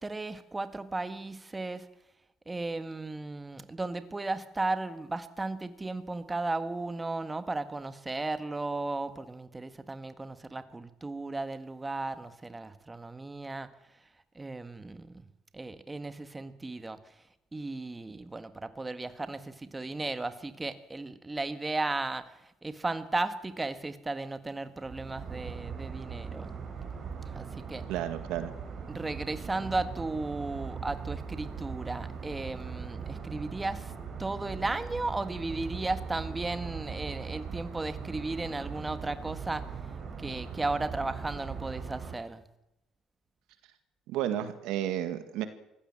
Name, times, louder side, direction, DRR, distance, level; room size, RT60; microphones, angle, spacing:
voice 1, 0.0-1.9 2.4-13.7 14.3-15.3 15.5-17.0 17.5-26.5 27.3-27.8 28.9-33.9 34.2-39.7 40.2-42.4, right 2 dB, 20° right, 10 dB, 1.6 m, -35 dB
sound 1, 24.8-42.2, right 6 dB, 45° right, 5.4 m, -40 dB
voice 2, 27.9-28.5 44.1-45.5, right 11 dB, 85° right, 10 dB, 1.9 m, -32 dB
23.0 x 16.0 x 7.5 m, 0.87 s
supercardioid pair, 85°, 0 cm